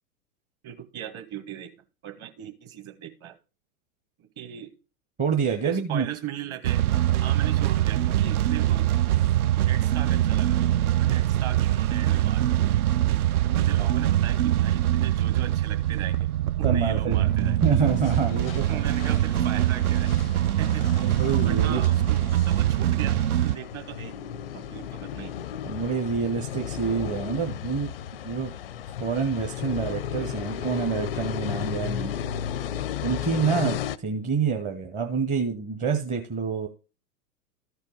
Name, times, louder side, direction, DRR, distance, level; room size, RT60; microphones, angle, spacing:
voice 1, 0.6-1.7 2.0-3.4 4.2-4.7 5.6-6.8 7.2-8.8 9.6-10.6 11.0-12.6 13.4-16.3 16.6-17.6 18.7-20.1 20.6-21.1 21.4-23.2 23.4-24.1 24.5-25.4, right 10 dB, 30° right, 7 dB, 1.5 m, -38 dB
voice 2, 5.2-6.1 13.8-13.9 16.6-18.8 21.0-21.8 25.6-28.5 29.0-32.1 33.0-36.7, right 6 dB, 15° right, 2 dB, 0.7 m, -27 dB
sound 1, 6.6-23.6, right 13 dB, 65° right, 0.5 m, -23 dB
sound 2, 17.8-34.0, left 9 dB, 40° left, 0.4 m, -34 dB
13.0 x 4.6 x 5.1 m, 0.33 s
figure-of-eight pair, 105°, 48 cm